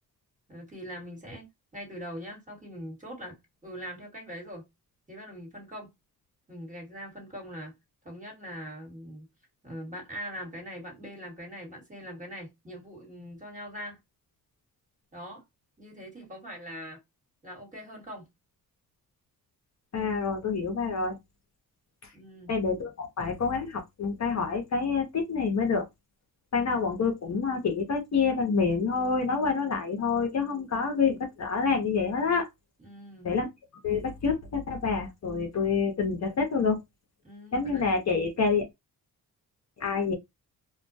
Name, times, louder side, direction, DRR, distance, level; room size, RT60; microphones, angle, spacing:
voice 1, 0.5-1.5 1.7-4.6 5.1-5.9 6.5-7.7 8.0-9.3 9.6-14.0 15.1-15.4 15.8-17.0 17.4-18.3 22.1-22.5 32.8-33.3 37.2-37.9, equal, 20° right, 1.3 m, -42 dB
voice 2, 19.9-21.2 22.5-25.9 26.5-32.5 33.2-33.5 33.8-36.8 37.5-38.6 39.8-40.1, left 5 dB, 45° left, 0.7 m, -27 dB
2.2 x 2.1 x 2.6 m
cardioid pair, 80°, 37 cm